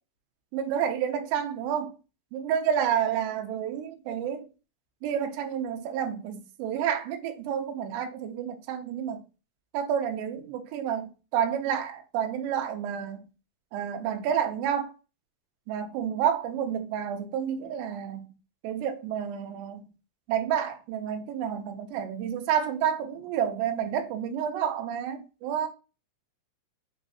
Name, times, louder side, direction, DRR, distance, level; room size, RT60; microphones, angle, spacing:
voice 1, 0.5-1.9 2.3-4.5 5.0-9.2 9.7-13.2 13.7-14.9 15.7-18.3 18.6-19.9 20.3-25.7, right 8 dB, 75° right, 2.3 m, -29 dB
5.8 x 3.0 x 2.9 m
omnidirectional pair, 4.4 m